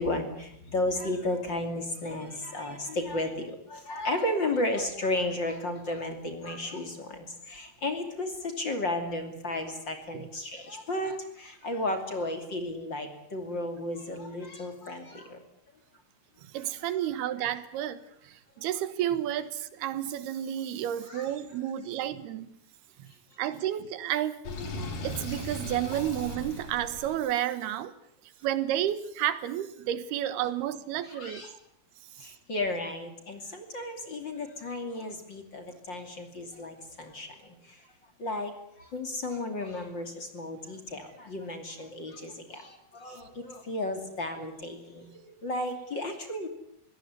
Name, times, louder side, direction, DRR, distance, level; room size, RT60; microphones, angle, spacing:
voice 1, 0.0-15.4 16.6-16.7 21.1-21.3 31.0-31.6 32.2-37.8 38.2-46.5, left 1 dB, 30° left, 6 dB, 2.8 m, -34 dB
voice 2, 16.4-22.6 23.0-23.1 23.4-24.4 25.0-27.9 28.4-31.4 32.2-32.3, right 11 dB, 85° right, 14 dB, 3.2 m, -31 dB
Sink (filling or washing), 24.4-27.2, left 1 dB, 60° left, 5.2 m, -37 dB
22.5 x 17.5 x 9.6 m, 0.73 s
omnidirectional pair, 4.5 m